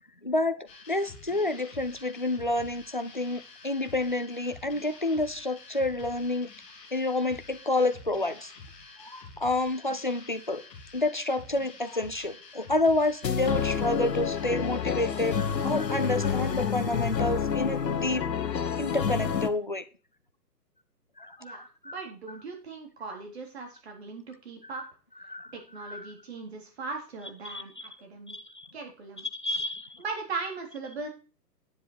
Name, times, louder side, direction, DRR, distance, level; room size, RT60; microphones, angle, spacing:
voice 1, 0.2-0.6 0.9-6.5 6.9-8.5 9.0-10.6 10.9-18.2 18.8-19.8 21.2-21.9 24.7-24.8 25.3-26.1 27.4-27.9 28.3-28.7 29.3-30.0, left 2 dB, 30° left, 10 dB, 0.5 m, -29 dB
sound 1, 0.7-16.7, left 4 dB, 5° left, 1.1 m, -49 dB
sound 2, 13.2-19.5, left 7 dB, 80° left, 1.6 m, -28 dB
voice 2, 21.4-24.8 25.5-28.4 28.7-29.3 30.0-31.1, right 4 dB, 40° right, 2 dB, 3.9 m, -39 dB
10.5 x 7.6 x 4.9 m, 0.36 s
hypercardioid pair, 175°, 49 cm